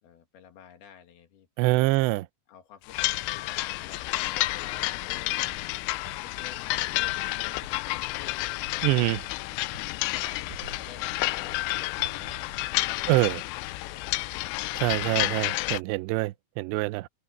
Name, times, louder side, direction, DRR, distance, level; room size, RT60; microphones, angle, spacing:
voice 1, 0.0-2.1 2.5-5.6 6.2-7.7 8.1-9.2 9.7-12.5 12.9-13.4 13.9-14.7, left 8 dB, 60° left, 3.7 m, -51 dB
voice 2, 1.6-2.3 8.8-9.2 13.1-13.4 14.7-17.1, right 20 dB, 90° right, 2.4 m, -25 dB
sound 1, 2.9-15.8, left 20 dB, 85° left, 3.1 m, -30 dB
sound 2, 5.0-12.7, right 6 dB, 45° right, 4.6 m, -52 dB
omnidirectional pair, 5.7 m